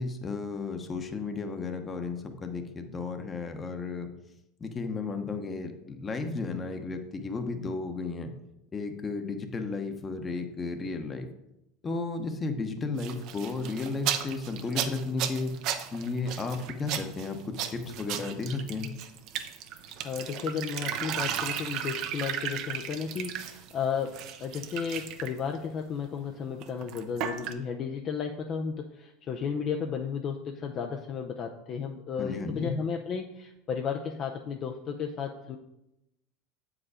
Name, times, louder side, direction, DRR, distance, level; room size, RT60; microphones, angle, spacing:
voice 1, 0.0-4.1 4.6-8.3 8.7-11.3 11.8-15.5 15.9-18.9 32.2-32.7, left 3 dB, 25° left, 6 dB, 1.0 m, -33 dB
sound 1, 13.0-23.7 24.0-25.4 26.6-27.5, right 9 dB, 55° right, 0.8 m, -35 dB
voice 2, 20.0-35.6, left 6 dB, 40° left, 3 dB, 0.6 m, -33 dB
7.6 x 4.9 x 4.9 m, 0.88 s
supercardioid pair, 110°, 0 cm